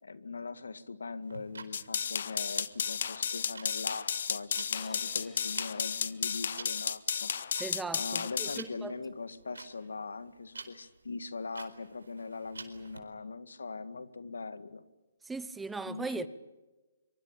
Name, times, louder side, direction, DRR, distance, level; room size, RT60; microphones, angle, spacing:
voice 1, 0.0-7.6 7.9-14.8 15.9-16.3, left 4 dB, 85° left, 1.9 m, -41 dB
sound 1, 1.2-13.0, right 4 dB, 90° right, 4.4 m, -49 dB
sound 2, 1.7-8.6, left 7 dB, 60° left, 1.2 m, -33 dB
sound 3, 4.7-8.1, left 4 dB, 10° left, 3.3 m, -59 dB
voice 2, 7.6-8.9 15.2-16.3, right 3 dB, 5° right, 0.9 m, -38 dB
24.5 x 24.0 x 8.7 m
hypercardioid pair, 155°, 0 cm